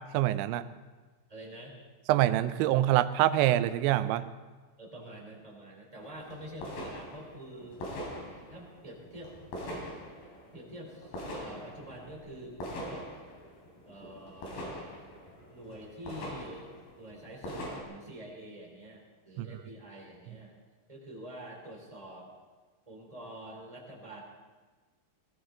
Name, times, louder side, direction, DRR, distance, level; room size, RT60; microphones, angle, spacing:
voice 1, 0.1-0.7 2.1-4.2 19.4-19.5, right 14 dB, 85° right, 13 dB, 3.0 m, -25 dB
voice 2, 1.3-1.7 4.8-7.8 8.5-9.8 10.5-13.1 13.9-15.0 15.5-16.7 17.0-20.5 20.9-22.3 22.9-24.2, right 1 dB, 10° right, -1 dB, 3.1 m, -46 dB
sound 1, 6.0-17.8, equal, 55° left, 4.8 m, -43 dB
21.0 x 17.0 x 3.9 m, 1.3 s
omnidirectional pair, 5.2 m